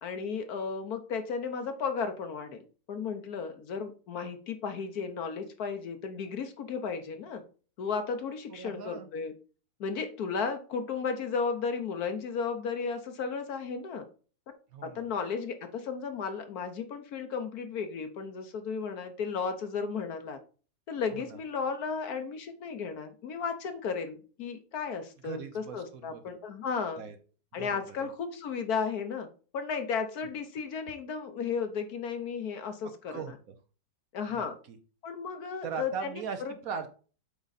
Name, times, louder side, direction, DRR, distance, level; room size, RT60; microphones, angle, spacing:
voice 1, 0.0-7.4 7.8-9.3 9.8-14.1 14.8-20.4 20.9-27.0 27.5-29.3 29.5-33.3 34.1-34.6 35.0-36.5, left 5 dB, 65° left, 8 dB, 1.3 m, -34 dB
voice 2, 8.5-9.1 14.7-15.0 21.1-21.2 25.2-26.2 27.0-27.1 27.5-28.1 33.1-33.5 34.3-34.8 35.6-36.9, right 6 dB, 60° right, 8 dB, 1.1 m, -39 dB
8.1 x 3.9 x 4.0 m, 0.37 s
omnidirectional pair, 1.9 m